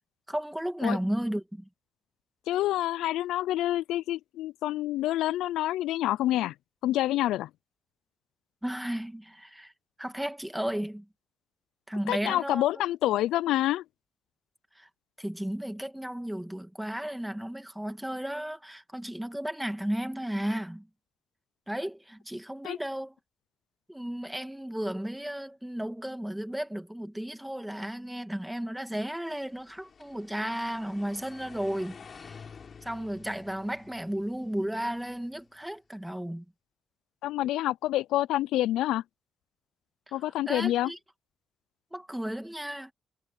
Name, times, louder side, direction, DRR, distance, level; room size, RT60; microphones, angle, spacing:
voice 1, 0.3-1.7 8.6-9.7 10.0-11.1 11.9-12.6 14.8-14.9 15.2-20.9 21.7-23.2 23.9-32.4 32.8-36.4 40.1-40.2 40.5-41.0 41.9-42.9, right 1 dB, 5° right, 2.0 m, -34 dB
voice 2, 2.5-6.5 6.8-7.5 12.1-13.8 22.6-22.8 37.2-39.0 40.1-40.9, left 14 dB, 90° left, 0.4 m, -27 dB
sound 1, 29.5-35.6, left 6 dB, 45° left, 6.5 m, -51 dB
cardioid pair, 90°, 0 cm